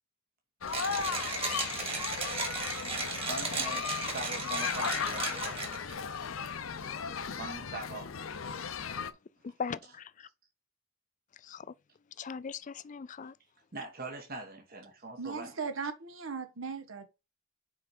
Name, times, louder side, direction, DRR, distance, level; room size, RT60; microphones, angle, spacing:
sound 1, 0.6-9.1, left 6 dB, 75° left, 0.7 m, -36 dB
Mechanisms, 0.7-5.9, right 3 dB, 30° right, 2.2 m, -35 dB
voice 1, 3.2-5.8 7.3-8.1 13.7-15.5, right 2 dB, 45° right, 1.3 m, -42 dB
voice 2, 9.4-10.3 11.4-11.7 12.2-13.3, left 6 dB, 40° left, 0.4 m, -39 dB
voice 3, 15.2-17.1, right 5 dB, 75° right, 1.2 m, -38 dB
6.1 x 4.8 x 4.3 m
head